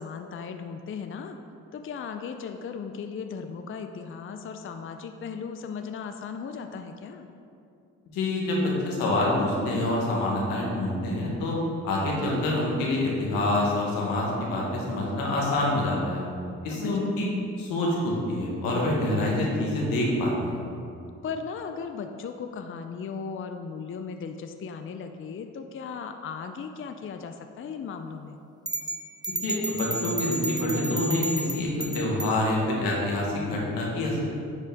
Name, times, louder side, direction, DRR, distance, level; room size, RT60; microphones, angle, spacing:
voice 1, 0.0-1.4 1.7-7.3 16.7-17.1 21.2-28.4, left 6 dB, 40° left, 6 dB, 0.5 m, -37 dB
voice 2, 8.1-11.6 11.8-16.2 16.6-17.3 17.6-20.6 29.4-31.7 31.9-34.3, left 1 dB, 90° left, -3 dB, 1.6 m, -26 dB
sound 1, 28.7-32.4, right 2 dB, 10° right, 0.5 m, -32 dB
9.8 x 4.4 x 3.6 m, 2.5 s
supercardioid pair, 60°, 34 cm